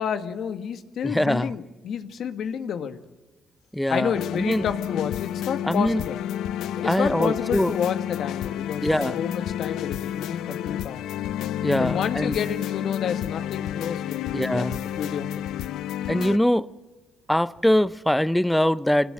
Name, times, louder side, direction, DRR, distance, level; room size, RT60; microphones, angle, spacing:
voice 1, 0.0-3.0 3.9-6.2 6.8-11.0 11.8-14.2 14.5-15.4, left 7 dB, 70° left, 1.6 m, -30 dB
voice 2, 1.0-1.5 3.7-4.6 5.6-6.0 6.8-7.7 8.8-9.2 11.6-12.4 14.3-14.9 16.1-16.7 17.3-19.1, left 1 dB, 5° left, 0.7 m, -23 dB
sound 1, 4.1-16.4, left 11 dB, 85° left, 0.6 m, -30 dB
24.5 x 19.0 x 7.8 m
cardioid pair, 90°, 0 cm